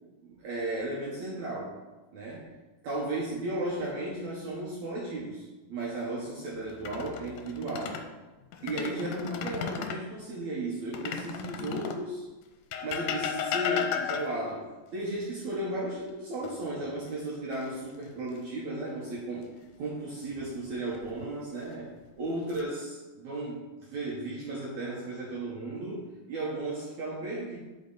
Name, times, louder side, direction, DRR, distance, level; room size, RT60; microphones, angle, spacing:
voice 1, 0.2-1.8 2.1-2.5 2.8-8.0 8.6-12.2 12.8-14.7 14.9-19.5 19.8-21.9 22.2-27.6, right 2 dB, 65° right, -5 dB, 2.5 m, -35 dB
sound 1, 6.7-8.1 8.5-10.1 10.9-12.1 12.7-14.5 16.4-17.1 17.5-17.7 20.7-21.3 22.0-22.6, left 8 dB, 75° left, 2.1 m, -34 dB
11.0 x 5.1 x 4.1 m, 1.2 s
omnidirectional pair, 3.9 m